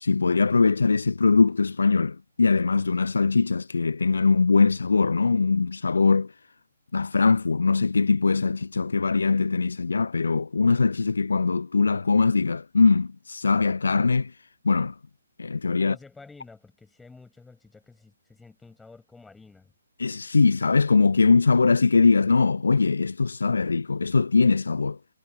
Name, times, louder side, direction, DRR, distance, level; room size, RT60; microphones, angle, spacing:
voice 1, 0.0-6.3 6.9-14.3 14.6-15.0 15.4-16.0 20.0-25.0, left 4 dB, 70° left, 0.5 m, -21 dB
voice 2, 15.8-19.7, left 3 dB, 5° left, 6.5 m, -50 dB
figure-of-eight pair, 135°, 0 cm